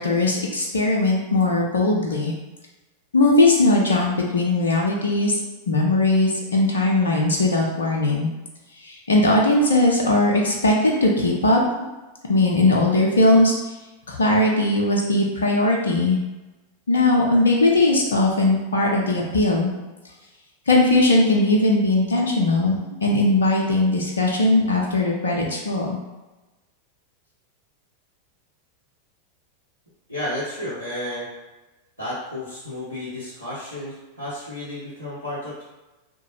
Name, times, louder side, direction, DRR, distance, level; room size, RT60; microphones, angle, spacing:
voice 1, 0.0-2.3 3.1-5.4 5.7-8.3 8.8-11.6 12.2-13.5 14.1-16.2 16.9-19.7 20.7-26.0, left 2 dB, 70° left, -1 dB, 0.4 m, -19 dB
voice 2, 30.1-31.3 32.0-35.6, left 1 dB, 80° right, -11 dB, 0.8 m, -32 dB
2.8 x 2.2 x 3.0 m, 1.1 s
figure-of-eight pair, 90°, 0 cm